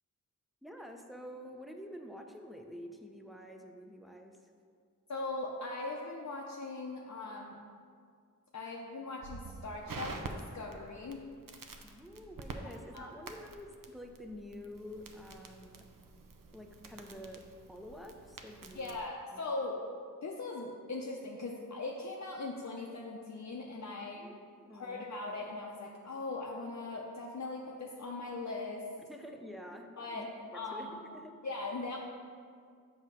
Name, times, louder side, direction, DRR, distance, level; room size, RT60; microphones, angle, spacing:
voice 1, 0.6-4.4 11.8-15.9 16.5-17.4 17.7-19.0 19.3-19.4 24.0-25.1 29.1-30.9 31.1-31.3, equal, ahead, 3 dB, 0.5 m, -48 dB
voice 2, 5.1-7.6 8.5-11.3 12.9-13.1 18.7-19.8 20.2-24.2 24.7-28.9 30.0-30.2 30.5-31.0 31.4-32.0, left 3 dB, 60° left, -2 dB, 0.6 m, -40 dB
Crackle, 9.2-19.1, right 3 dB, 90° right, 0.5 m, -48 dB
7.5 x 2.9 x 6.0 m, 2.2 s
wide cardioid pair, 75°, 32 cm